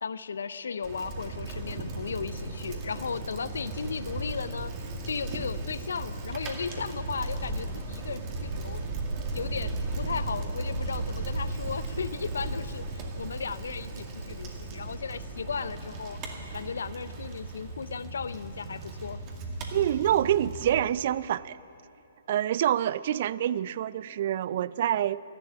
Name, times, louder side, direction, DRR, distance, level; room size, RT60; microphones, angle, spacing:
voice 1, 0.0-4.7 5.0-8.8 9.3-16.2 16.5-19.2, left 5 dB, 75° left, 14 dB, 0.5 m, -36 dB
Bicycle, 0.8-20.8, right 2 dB, 30° right, 2.2 m, -36 dB
voice 2, 19.7-21.6 22.3-25.2, right 11 dB, 50° right, 19 dB, 0.4 m, -26 dB
13.0 x 11.5 x 8.9 m, 2.8 s
hypercardioid pair, 130°, 0 cm